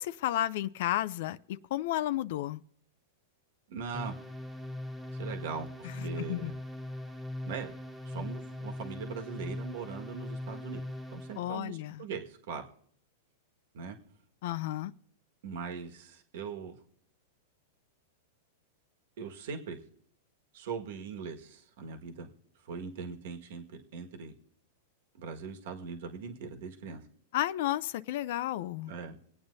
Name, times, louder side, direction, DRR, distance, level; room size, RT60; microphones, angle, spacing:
voice 1, 0.0-2.6 5.8-6.5 11.4-12.0 14.4-14.9 27.3-28.9, left 14 dB, 65° left, 0.4 m, -32 dB
voice 2, 3.7-4.1 5.1-6.6 7.4-7.7 8.0-10.8 11.1-12.6 13.7-14.0 15.4-16.8 19.2-19.8 20.5-22.3 22.6-24.3 25.1-27.0 28.9-29.2, right 5 dB, 70° right, 1.6 m, -40 dB
sound 1, 3.9-11.5, left 1 dB, 10° right, 1.4 m, -40 dB
24.0 x 8.8 x 2.7 m
hypercardioid pair, 135°, 0 cm